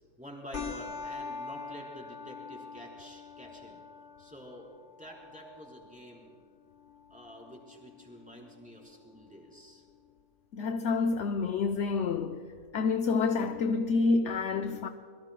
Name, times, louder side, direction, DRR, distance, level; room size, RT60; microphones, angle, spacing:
voice 1, 0.2-3.8 4.2-4.7 5.0-6.3 7.1-9.8, equal, 5° right, 4.0 m, -48 dB
sound 1, 0.5-9.5, left 4 dB, 85° left, 2.4 m, -45 dB
voice 2, 10.5-12.4 12.7-14.9, left 4 dB, 60° left, 1.0 m, -28 dB
26.0 x 22.0 x 2.2 m
omnidirectional pair, 1.5 m